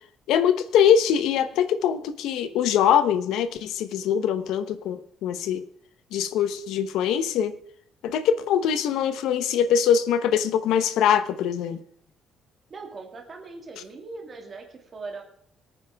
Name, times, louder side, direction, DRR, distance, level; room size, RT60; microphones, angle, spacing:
voice 1, 0.3-5.6 6.1-7.5 8.0-11.8, left 8 dB, 85° left, 12 dB, 1.0 m, -23 dB
voice 2, 12.7-15.2, right 3 dB, 25° right, 3 dB, 2.3 m, -40 dB
23.0 x 9.3 x 3.6 m, 0.64 s
cardioid pair, 175°, 0 cm